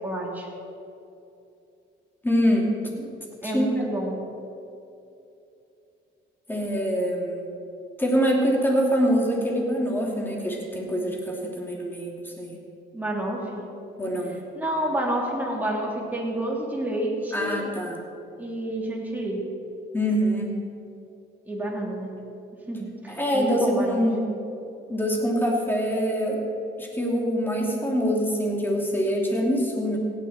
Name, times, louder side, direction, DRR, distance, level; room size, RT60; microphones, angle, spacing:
voice 1, 0.0-0.5 3.4-4.2 12.9-13.6 14.5-17.7 18.4-19.4 21.5-22.1 22.7-24.0, right 1 dB, 10° right, -3 dB, 3.1 m, -29 dB
voice 2, 2.2-3.1 3.4-3.7 6.5-7.5 8.0-12.6 14.0-14.4 17.3-18.0 19.9-20.5 23.1-24.2 24.9-26.4 26.8-30.0, equal, 10° left, -1 dB, 2.6 m, -24 dB
16.0 x 9.8 x 4.3 m, 2.7 s
cardioid pair, 90°, 20 cm